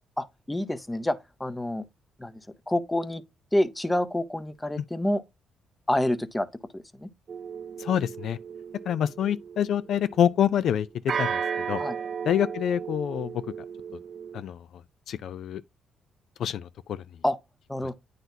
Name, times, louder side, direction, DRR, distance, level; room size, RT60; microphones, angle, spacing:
voice 1, 0.2-1.8 2.2-2.4 2.7-3.2 3.5-5.2 5.9-6.5 6.7-7.1 11.8-12.0 17.2-17.4 17.7-17.9, left 1 dB, 10° left, 0.6 m, -28 dB
sound 1, 7.3-10.3 11.1-14.4, right 7 dB, 50° right, 0.4 m, -35 dB
voice 2, 7.8-8.4 8.9-11.4 11.7-11.8 12.2-13.3 14.3-14.6 15.1-15.6 16.4-17.0, left 9 dB, 70° left, 0.3 m, -26 dB
9.1 x 4.0 x 2.7 m
cardioid pair, 90°, 0 cm